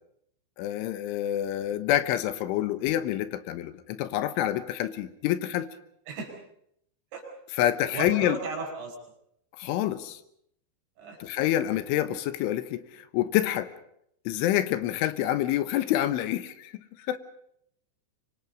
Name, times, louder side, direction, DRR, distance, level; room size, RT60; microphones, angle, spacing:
voice 1, 0.6-5.7 7.6-8.4 9.6-10.2 11.2-13.7 14.3-17.2, left 13 dB, 80° left, 12 dB, 3.4 m, -27 dB
voice 2, 7.9-9.0 11.0-11.2, right 4 dB, 65° right, 2 dB, 7.3 m, -35 dB
25.0 x 25.0 x 5.3 m, 0.72 s
omnidirectional pair, 5.6 m